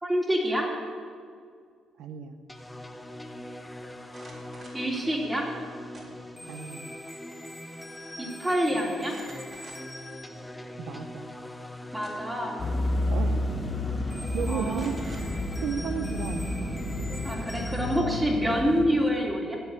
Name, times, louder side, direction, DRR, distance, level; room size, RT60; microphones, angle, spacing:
voice 1, 0.0-0.7 4.7-5.5 8.2-9.1 11.9-12.6 14.5-14.8 17.2-19.6, equal, 15° right, -1 dB, 3.2 m, -27 dB
voice 2, 2.0-2.3 6.5-6.9 10.8-11.3 13.1-13.4 14.1-15.0 15.3-16.8, right 7 dB, 80° right, 7 dB, 0.8 m, -34 dB
sound 1, 2.5-18.0, left 1 dB, 10° left, 1.1 m, -42 dB
sound 2, 4.0-4.9 5.9-6.5 6.9-7.5 7.7-7.8 9.0-10.0 10.6-10.7 11.7-12.4 13.4-13.6 13.9-14.2 14.7-15.2 17.0-17.1 17.5-18.4, right 2 dB, 40° right, 3.7 m, -50 dB
sound 3, 12.6-18.9, left 1 dB, 35° left, 2.2 m, -30 dB
15.0 x 6.3 x 9.7 m, 2.1 s
cardioid pair, 90°, 0 cm